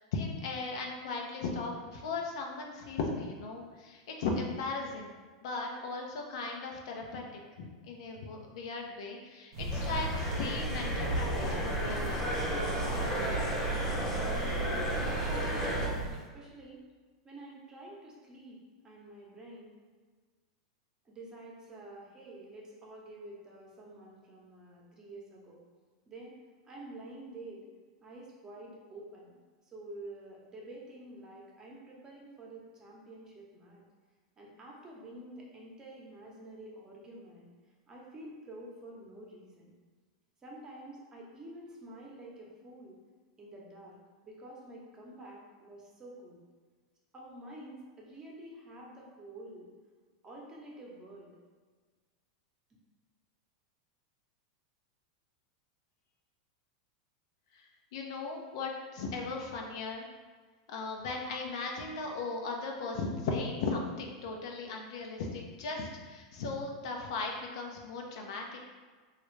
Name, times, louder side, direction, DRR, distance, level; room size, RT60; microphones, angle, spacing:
voice 1, 0.1-5.1 5.4-7.2 7.6-12.4 57.5-57.6 57.9-60.1 60.7-68.7, left 3 dB, 70° left, 1 dB, 0.6 m, -37 dB
sound 1, 9.5-16.2, right 2 dB, 70° right, 0.5 m, -35 dB
sound 2, 9.7-15.9, equal, 20° left, 0.8 m, -35 dB
voice 2, 14.6-16.8 17.2-18.6 18.8-19.7 21.0-25.6 26.1-26.3 26.7-27.6 28.0-29.4 29.6-33.8 34.4-37.5 37.9-39.7 40.4-43.0 43.4-46.4 47.1-49.7 50.2-51.3, right 1 dB, 25° right, -3 dB, 0.8 m, -49 dB
3.1 x 2.4 x 3.1 m, 1.5 s
hypercardioid pair, 120°, 3 cm